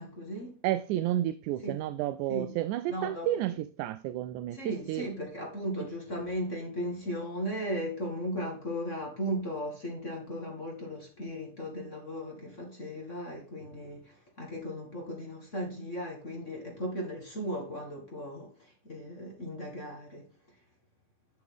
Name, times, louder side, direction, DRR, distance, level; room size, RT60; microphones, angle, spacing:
voice 1, 0.0-0.6 1.6-1.7 2.3-2.5 2.9-3.3 4.5-20.3, equal, 25° left, 2.2 m, -36 dB
voice 2, 0.6-5.1, right 13 dB, 80° right, 1.9 m, -31 dB
11.5 x 6.2 x 3.6 m
omnidirectional pair, 3.6 m